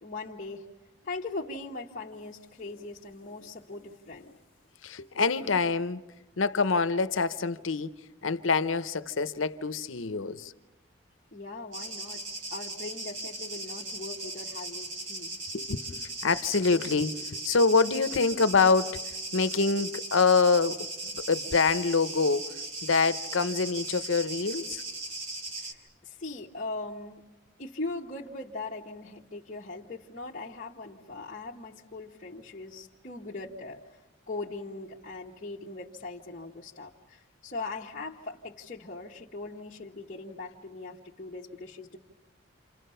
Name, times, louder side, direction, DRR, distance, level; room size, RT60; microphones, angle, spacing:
voice 1, 0.0-0.6 1.0-4.3 11.3-12.2 12.5-15.3 25.6-27.2 27.6-34.0 34.3-42.0, left 3 dB, 40° left, 1.2 m, -40 dB
voice 2, 4.8-6.0 6.4-7.9 8.2-10.5 15.5-17.1 17.4-19.0 19.3-20.9 21.1-22.5 22.8-24.8, left 4 dB, 80° left, 0.8 m, -25 dB
sound 1, 11.7-25.7, right 2 dB, 85° right, 3.4 m, -38 dB
28.5 x 28.0 x 5.6 m
head